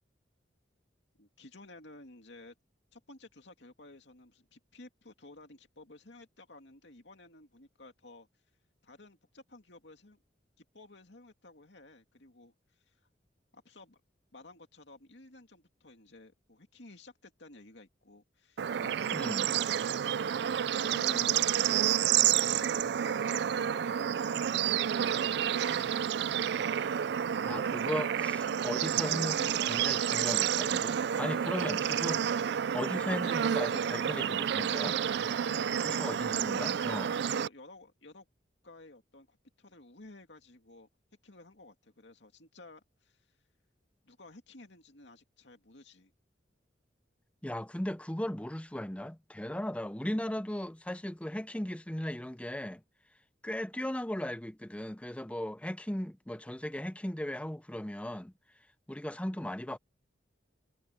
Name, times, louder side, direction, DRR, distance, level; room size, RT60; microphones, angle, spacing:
voice 1, 1.2-2.5 2.9-8.3 8.8-10.2 10.6-13.0 13.5-14.0 14.3-19.2 20.8-24.7 25.1-26.1 35.4-36.2 37.3-38.3 38.6-40.9 41.2-43.3 44.0-46.1, left 2 dB, 70° left, 2.5 m, -54 dB
Bird / Insect / Frog, 18.6-37.5, right 9 dB, 65° right, 0.4 m, -30 dB
voice 2, 19.1-19.5 27.4-35.0 35.8-37.2 47.4-52.8 53.4-58.3 58.9-59.8, left 1 dB, 5° left, 0.6 m, -37 dB
head